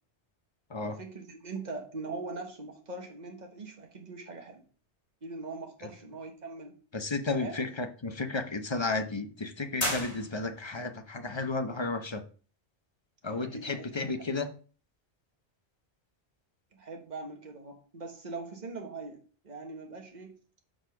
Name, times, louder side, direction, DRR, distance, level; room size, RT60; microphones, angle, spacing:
voice 1, 0.8-4.6 5.2-6.8 7.3-7.5 13.2-14.3 16.7-20.3, right 3 dB, 40° right, 3 dB, 1.5 m, -42 dB
voice 2, 6.9-12.2 13.2-14.5, left 3 dB, 30° left, 7 dB, 0.7 m, -33 dB
sound 1, 9.8-10.8, left 1 dB, 75° left, 2.7 m, -33 dB
6.0 x 5.1 x 5.8 m, 0.40 s
omnidirectional pair, 1.1 m